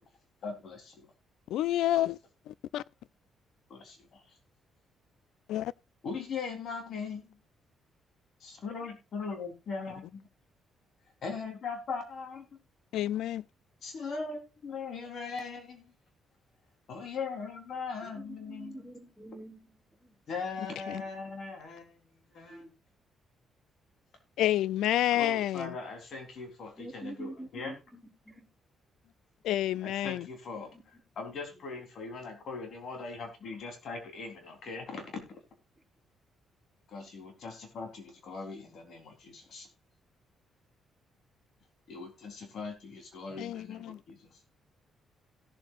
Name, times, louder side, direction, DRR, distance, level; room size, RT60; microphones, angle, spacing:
voice 1, 0.4-1.1 3.7-4.2 6.0-7.4 8.4-10.2 11.2-12.5 13.8-15.9 16.9-18.8 20.3-22.7 25.1-27.8 29.8-35.4 36.9-39.7 41.9-44.4, left 4 dB, 60° left, 3.8 m, -40 dB
voice 2, 1.5-2.2 2.5-2.8 5.5-5.7 12.9-13.4 20.9-21.0 24.4-25.7 29.4-30.3 43.4-44.0, left 13 dB, 85° left, 0.4 m, -29 dB
voice 3, 18.0-20.2 22.5-22.7 26.8-28.5 30.5-30.6 43.3-43.7, right 1 dB, 5° right, 3.4 m, -46 dB
17.0 x 7.6 x 2.5 m
cardioid pair, 90°, 0 cm